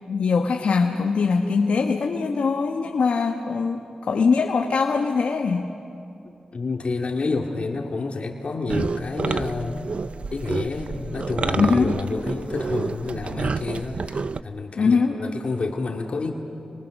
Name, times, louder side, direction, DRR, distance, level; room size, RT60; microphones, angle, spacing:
voice 1, 0.1-5.7 11.6-11.9 14.8-15.2, left 5 dB, 80° left, 3 dB, 1.2 m, -22 dB
voice 2, 6.2-9.8 10.3-16.3, left 3 dB, 60° left, 2 dB, 2.1 m, -29 dB
sound 1, 8.7-14.4, right 4 dB, 60° right, 0.5 m, -29 dB
29.0 x 24.5 x 6.5 m, 2.7 s
cardioid pair, 60°, 2 cm